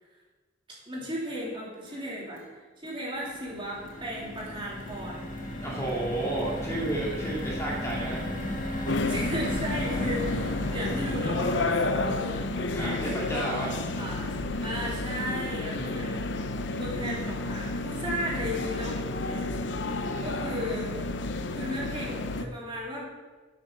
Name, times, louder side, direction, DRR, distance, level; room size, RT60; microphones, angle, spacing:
voice 1, 0.9-2.4 2.8-5.3 9.0-13.0 13.3-13.5 14.0-19.6 20.2-20.9 21.5-23.0, equal, 25° right, -4 dB, 2.9 m, -35 dB
sound 1, 1.3-1.5 1.8-2.5 2.8-3.0 3.3-3.5 3.8-4.5 4.8-5.0 5.4-5.5 5.9-6.6 6.9-7.1 7.4-7.6 7.9-8.5 8.9-9.1, equal, 70° right, 2.8 m, -51 dB
sound 2, 3.1-19.5 19.9-20.0 20.2-20.5, left 1 dB, 45° left, 1.6 m, -36 dB
voice 2, 5.6-8.2 12.8-13.7 19.8-20.3, right 1 dB, 15° left, -4 dB, 2.3 m, -32 dB
sound 3, 8.9-22.4, left 2 dB, 65° left, 0.7 m, -31 dB
11.5 x 6.5 x 6.8 m, 1.3 s
head